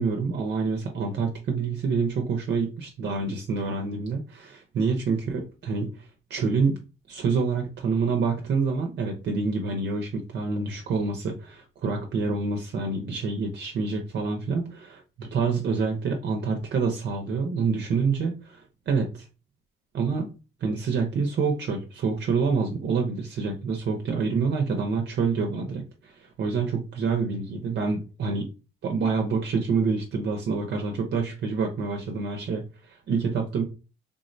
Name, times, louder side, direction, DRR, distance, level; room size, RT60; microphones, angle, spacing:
voice 1, 0.0-6.8 7.1-19.2 19.9-20.3 20.6-28.5 28.8-33.6, right 4 dB, 60° right, 3 dB, 0.6 m, -27 dB
3.6 x 2.0 x 2.6 m, 0.31 s
cardioid pair, 90°, 20 cm